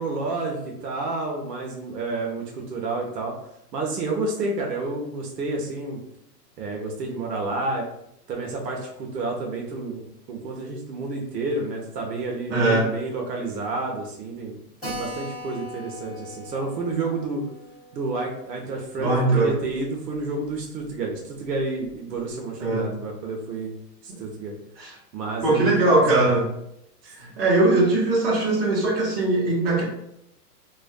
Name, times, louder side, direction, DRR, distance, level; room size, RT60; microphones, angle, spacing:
voice 1, 0.0-3.3 3.7-6.0 6.6-7.8 8.3-17.4 17.9-23.7 24.0-24.5 25.1-26.3, right 3 dB, 75° right, 0 dB, 0.8 m, -30 dB
voice 2, 12.5-12.9 19.0-19.5 22.6-22.9 24.8-24.9 25.4-26.5 27.2-29.8, right 2 dB, 35° right, -5 dB, 0.9 m, -20 dB
Keyboard (musical), 14.8-19.9 20.1-20.2 20.5-20.6 20.9-21.0 21.6-21.9, left 1 dB, ahead, 0.6 m, -40 dB
2.4 x 2.1 x 2.4 m, 0.78 s
hypercardioid pair, 165°, 49 cm